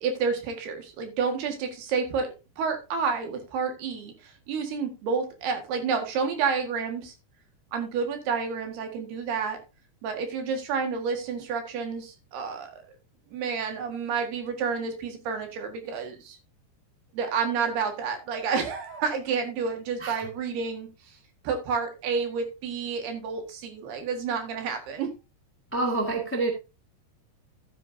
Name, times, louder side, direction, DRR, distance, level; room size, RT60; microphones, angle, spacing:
voice 1, 0.0-2.3 2.6-7.1 7.7-9.6 10.0-12.8 13.3-16.4 17.1-20.9 21.4-25.1, right 5 dB, 75° right, 5 dB, 3.9 m, -30 dB
voice 2, 25.7-26.5, right 2 dB, 10° left, 2 dB, 0.7 m, -27 dB
12.5 x 9.0 x 2.7 m, 0.28 s
omnidirectional pair, 4.6 m